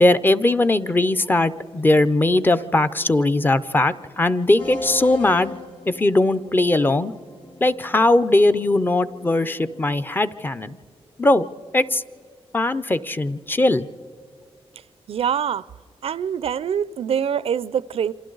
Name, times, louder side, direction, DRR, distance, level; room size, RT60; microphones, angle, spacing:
voice 1, 0.0-5.5 5.9-7.1 7.6-10.8 11.2-11.5 11.7-12.0 12.5-13.9, left 2 dB, 20° left, 0.5 m, -19 dB
sound 1, 4.6-9.9, left 3 dB, 50° left, 2.4 m, -38 dB
voice 2, 15.1-15.7 16.0-18.1, right 8 dB, 65° right, 0.4 m, -24 dB
28.0 x 25.5 x 3.9 m
wide cardioid pair, 160°, 11 cm